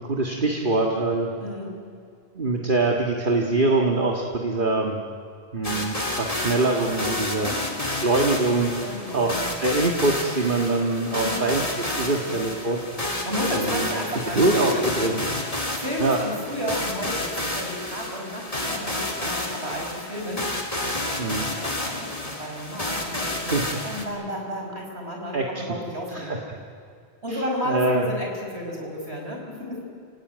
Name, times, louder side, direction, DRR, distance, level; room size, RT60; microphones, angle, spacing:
voice 1, 0.0-1.3 2.4-5.0 5.5-7.5 7.8-8.7 9.1-11.6 11.9-12.8 13.6-13.9 14.3-14.7 15.0-15.2 16.0-16.2 21.2-21.5 23.4-23.8 25.3-25.5 26.1-26.4 27.3-28.0, right 2 dB, 55° right, 0 dB, 2.0 m, -24 dB
voice 2, 1.4-1.7 7.3-7.8 8.8-9.5 11.1-11.4 12.2-12.5 13.0-15.3 15.8-20.5 20.8-23.6 23.8-26.4 27.2-29.8, equal, 85° right, 0 dB, 5.6 m, -32 dB
sound 1, 5.6-24.1, left 1 dB, 35° left, 2.8 m, -30 dB
29.5 x 17.5 x 9.3 m, 2.3 s
omnidirectional pair, 1.1 m